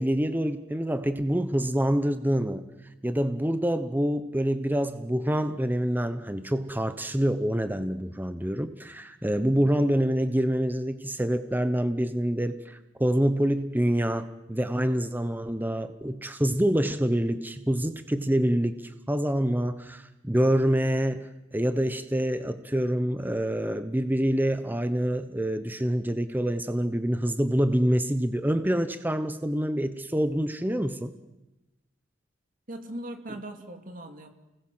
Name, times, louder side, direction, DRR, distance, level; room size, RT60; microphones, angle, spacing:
voice 1, 0.0-2.7 3.0-18.8 19.1-31.1, equal, 10° right, 10 dB, 1.0 m, -26 dB
voice 2, 9.4-9.7 32.7-34.3, right 1 dB, 40° right, 5 dB, 2.8 m, -39 dB
30.0 x 20.0 x 7.8 m, 1.0 s
head